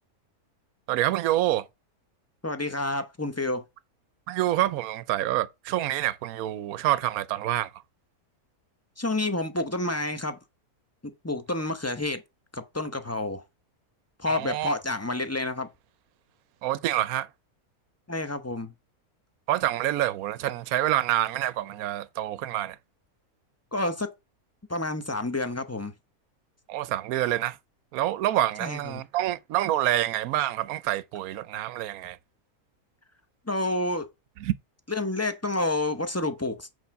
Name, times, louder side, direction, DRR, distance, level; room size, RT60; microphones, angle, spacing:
voice 1, 0.9-1.7 4.3-7.7 14.3-14.7 16.6-17.3 19.5-22.8 26.7-27.6 27.9-32.2 34.4-34.5, right 14 dB, 75° right, 1.1 m, -27 dB
voice 2, 2.4-3.6 9.0-10.4 11.0-12.2 12.5-13.4 14.2-15.7 18.1-18.7 23.7-24.1 24.7-25.9 28.6-29.0 33.5-34.1 34.9-36.8, left 2 dB, 15° left, 0.7 m, -29 dB
8.1 x 4.6 x 5.8 m
omnidirectional pair, 1.6 m